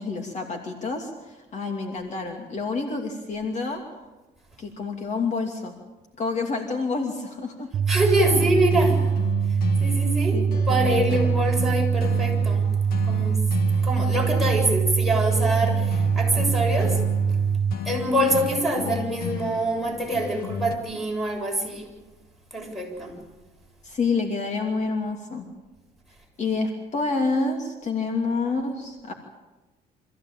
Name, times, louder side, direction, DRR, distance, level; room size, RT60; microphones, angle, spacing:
voice 1, 0.0-3.8 4.6-5.7 6.2-7.7 10.3-11.1 23.8-25.5 26.4-29.1, left 4 dB, 45° left, 3 dB, 2.7 m, -28 dB
sound 1, 7.7-17.7, right 6 dB, 55° right, 0.8 m, -23 dB
voice 2, 7.9-9.1 9.8-10.4 10.7-12.7 13.0-13.4 13.8-17.0 17.9-21.9 22.5-23.2, right 1 dB, ahead, -2 dB, 7.3 m, -25 dB
sound 2, 8.4-20.8, left 5 dB, 60° left, 2.3 m, -34 dB
26.0 x 15.5 x 8.8 m, 1.1 s
cardioid pair, 110°, 17 cm